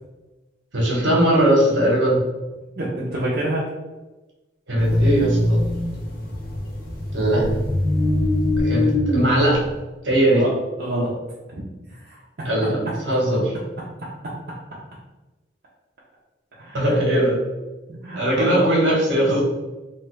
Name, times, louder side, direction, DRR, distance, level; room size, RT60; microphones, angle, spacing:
voice 1, 0.7-2.2 4.7-5.6 7.1-7.5 8.6-9.6 10.0-10.4 12.4-13.5 16.7-17.4 18.2-19.4, right 1 dB, 75° right, -3 dB, 1.0 m, -19 dB
voice 2, 2.7-3.6 10.3-10.5 10.8-11.1 11.5-12.5 16.5-16.9 17.9-18.7, right 1 dB, 55° right, -7 dB, 0.6 m, -28 dB
sound 1, 4.8-9.8, left 1 dB, 45° left, 0.7 m, -22 dB
3.2 x 2.3 x 3.1 m, 1.1 s
head